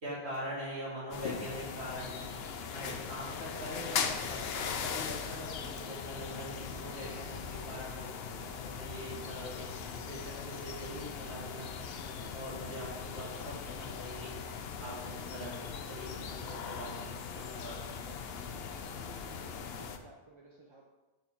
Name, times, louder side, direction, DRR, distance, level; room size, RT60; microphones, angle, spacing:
voice 1, 0.0-2.3 2.7-7.4 7.6-8.1 8.4-14.3 14.8-15.5 15.9-17.8, equal, 85° right, -8 dB, 2.2 m, -43 dB
sound 1, 1.1-20.0, left 6 dB, 70° left, 0.8 m, -40 dB
voice 2, 19.2-20.9, right 2 dB, 35° right, -1 dB, 0.5 m, -57 dB
5.1 x 4.7 x 5.6 m, 1.2 s
omnidirectional pair, 1.1 m